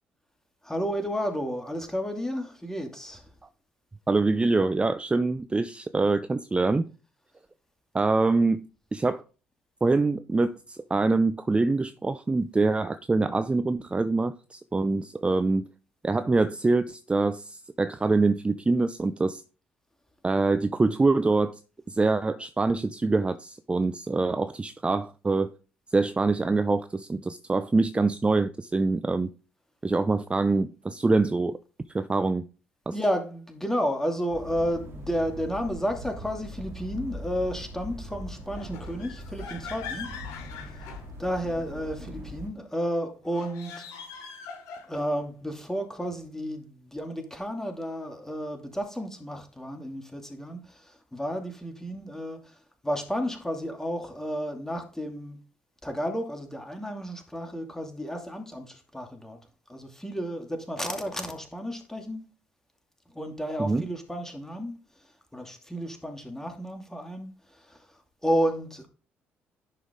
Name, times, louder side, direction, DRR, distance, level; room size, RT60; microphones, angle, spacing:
voice 1, 0.6-3.2 32.9-40.1 41.2-43.8 44.9-52.5 52.8-55.4 55.8-59.4 59.7-62.2 63.1-64.7 65.3-67.8 68.2-68.9, equal, 10° left, 2.5 m, -32 dB
voice 2, 4.1-6.9 7.9-8.6 8.9-9.2 9.8-15.7 16.0-19.4 20.2-21.6 21.9-25.5 25.9-29.3 29.8-31.6 31.9-32.4 32.9-33.0 63.6-63.8, right 3 dB, 20° right, 0.6 m, -25 dB
sound 1, 34.3-42.5, equal, 50° right, 2.4 m, -41 dB
sound 2, 38.5-41.6 43.2-45.2, left 6 dB, 65° left, 3.7 m, -42 dB
11.0 x 5.2 x 3.7 m
hypercardioid pair, 50°, 6 cm